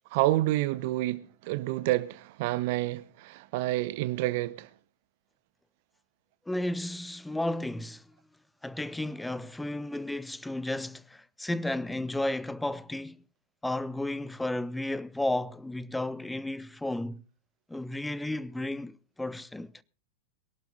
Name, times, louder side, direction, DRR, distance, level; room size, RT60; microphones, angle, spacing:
voice 1, 0.1-4.7, right 17 dB, 50° right, 0.6 m, -29 dB
voice 2, 6.5-8.0 8.6-13.2 13.6-17.2 17.7-19.7, left 1 dB, 5° left, 0.7 m, -33 dB
22.5 x 12.0 x 3.8 m
figure-of-eight pair, 90°, 0 cm